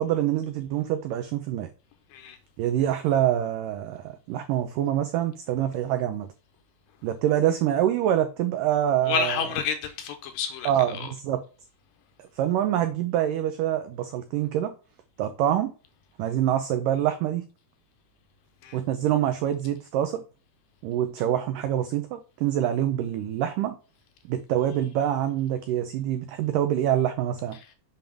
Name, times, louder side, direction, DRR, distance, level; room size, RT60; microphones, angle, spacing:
voice 1, 0.0-1.7 2.6-6.3 7.0-9.5 10.7-11.4 12.4-14.7 15.2-15.7 16.2-17.4 18.7-20.2 20.8-23.8 24.3-27.6, right 11 dB, 85° right, 1.9 m, -25 dB
voice 2, 9.1-10.7 11.0-11.1 18.6-18.8, left 7 dB, 75° left, 2.2 m, -29 dB
7.2 x 5.6 x 3.4 m
omnidirectional pair, 4.6 m